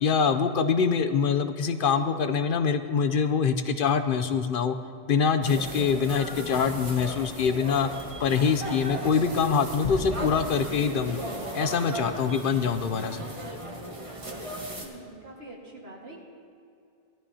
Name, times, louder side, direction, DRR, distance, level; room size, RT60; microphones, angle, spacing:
voice 1, 0.0-4.7 5.1-7.9 8.2-11.2 11.5-13.2, left 6 dB, 65° left, 10 dB, 0.7 m, -24 dB
sound 1, 5.4-14.9, right 1 dB, 30° right, 1.4 m, -36 dB
sound 2, 9.8-12.4, left 3 dB, 80° left, 1.6 m, -37 dB
voice 2, 14.8-16.2, right 1 dB, 75° right, -2 dB, 2.0 m, -45 dB
17.5 x 12.5 x 2.8 m, 2.5 s
omnidirectional pair, 1.0 m